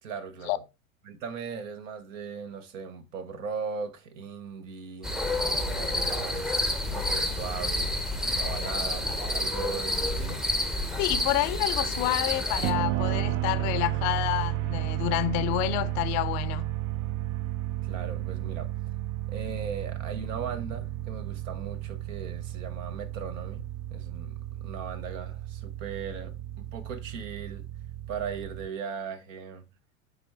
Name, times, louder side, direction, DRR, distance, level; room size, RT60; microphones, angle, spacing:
voice 1, 0.0-0.6 1.0-7.9 8.3-10.4 17.8-18.7 19.3-27.6 28.1-29.6, right 6 dB, 65° right, 1.1 m, -38 dB
sound 1, 5.0-12.7, left 1 dB, ahead, 0.7 m, -29 dB
voice 2, 11.0-16.7, left 16 dB, 40° left, 0.6 m, -28 dB
sound 2, 12.6-28.7, right 14 dB, 40° right, 0.5 m, -33 dB
8.7 x 3.6 x 3.3 m
hypercardioid pair, 85°, 42 cm